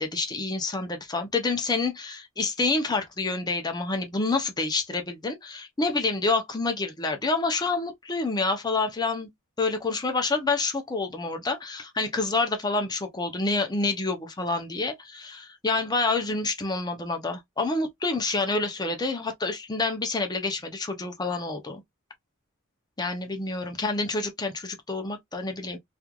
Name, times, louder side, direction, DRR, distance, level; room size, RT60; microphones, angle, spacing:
voice 1, 0.0-9.3 9.6-21.8 23.0-25.8, left 3 dB, 20° left, 0.5 m, -28 dB
3.0 x 2.4 x 2.2 m
head